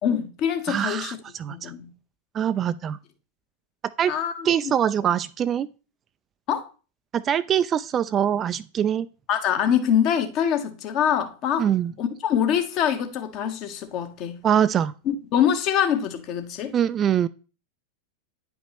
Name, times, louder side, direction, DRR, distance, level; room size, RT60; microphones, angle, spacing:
voice 1, 0.0-1.2 1.5-1.9 4.1-4.7 6.5-6.7 9.3-11.7 12.0-14.4 15.1-16.7, left 9 dB, 40° left, 1.1 m, -24 dB
voice 2, 0.7-1.7 2.3-3.0 4.0-4.1 4.4-5.7 7.1-9.1 11.6-11.9 14.4-14.9 16.7-17.3, right 9 dB, 25° right, 0.3 m, -23 dB
10.0 x 5.1 x 3.1 m
figure-of-eight pair, 90°, 0 cm